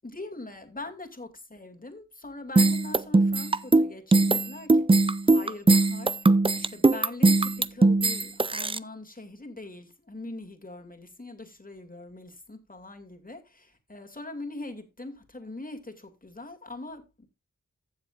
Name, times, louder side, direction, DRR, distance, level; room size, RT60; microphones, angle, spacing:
voice 1, 0.0-6.3 6.6-17.3, left 2 dB, 25° left, 2.5 m, -42 dB
sound 1, 2.6-8.8, right 3 dB, 15° right, 0.5 m, -20 dB
15.0 x 7.3 x 2.5 m
cardioid pair, 45°, 31 cm